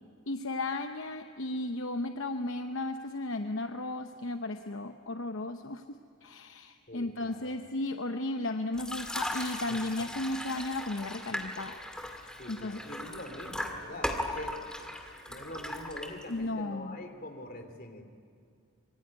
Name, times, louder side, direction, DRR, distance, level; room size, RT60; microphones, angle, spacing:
voice 1, 0.3-11.7 12.0-12.8 16.3-17.0, left 2 dB, 60° left, 7 dB, 0.9 m, -35 dB
voice 2, 6.9-7.5 12.4-14.5 15.3-18.1, left 1 dB, 40° left, 5 dB, 3.0 m, -44 dB
sound 1, 8.7-16.5, left 1 dB, 5° left, 2.1 m, -38 dB
25.5 x 22.5 x 9.5 m, 2.4 s
head